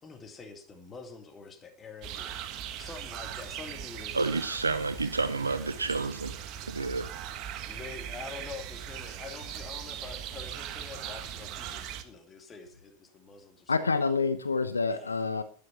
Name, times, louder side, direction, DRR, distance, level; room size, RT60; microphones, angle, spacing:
voice 1, 0.0-4.6 7.7-13.9 14.9-15.2, left 5 dB, 20° left, 2.6 m, -46 dB
sound 1, 2.0-12.0, right 9 dB, 40° right, 1.6 m, -40 dB
voice 2, 4.1-6.4 6.7-7.1, right 3 dB, 80° right, 0.9 m, -30 dB
voice 3, 13.7-15.4, left 4 dB, 75° left, 1.0 m, -27 dB
12.5 x 11.0 x 5.8 m
figure-of-eight pair, 90°, 0 cm